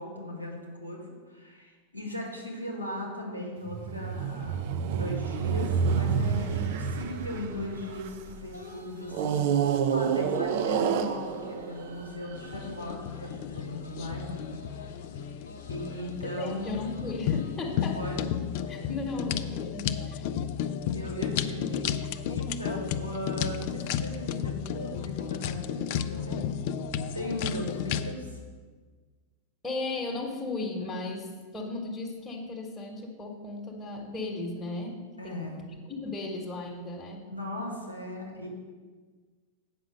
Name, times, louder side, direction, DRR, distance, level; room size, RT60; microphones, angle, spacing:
voice 1, 0.0-4.7 4.9-14.5 15.7-16.7 17.7-18.3 18.7-18.8 20.9-22.0 22.3-26.5 27.1-28.4 35.2-35.6 37.3-38.5, left 1 dB, 90° right, 0 dB, 2.0 m, -38 dB
sound 1, 3.7-8.3 9.1-12.5, right 7 dB, 50° right, 0.5 m, -29 dB
sound 2, 5.5-18.4, equal, 80° left, 1.0 m, -50 dB
sound 3, 12.3-28.1, left 9 dB, 50° left, 0.4 m, -33 dB
voice 2, 16.3-18.1 18.7-20.2 29.6-37.3, left 2 dB, 10° left, -2 dB, 1.3 m, -36 dB
8.3 x 5.9 x 6.6 m, 1.5 s
figure-of-eight pair, 90°, 0 cm